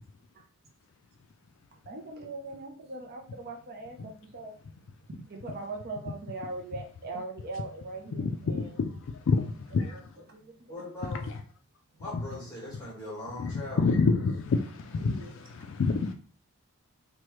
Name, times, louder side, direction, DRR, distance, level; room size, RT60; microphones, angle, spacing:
voice 1, 1.8-4.5 5.1-8.8 9.8-10.0 10.3-11.1 15.0-15.4, right 2 dB, 45° right, 0.5 m, -41 dB
voice 2, 8.2-8.9 9.3-9.5 9.7-10.0 13.4-13.5 13.8-16.1, left 4 dB, 55° left, 0.3 m, -27 dB
voice 3, 10.7-11.3 12.0-13.9, left 1 dB, 15° left, 1.5 m, -40 dB
3.0 x 2.2 x 3.0 m
head